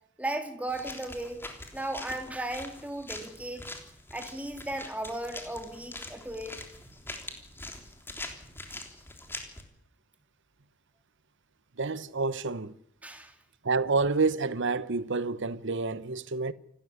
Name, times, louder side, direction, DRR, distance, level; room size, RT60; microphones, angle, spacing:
voice 1, 0.2-1.4 1.7-3.6 4.1-6.7 13.0-13.3, right 1 dB, 5° right, 2.9 m, -36 dB
sound 1, 0.7-9.6, left 2 dB, 10° left, 3.3 m, -43 dB
voice 2, 11.8-12.7 13.6-16.5, right 4 dB, 60° right, 1.0 m, -28 dB
28.0 x 13.0 x 9.6 m
head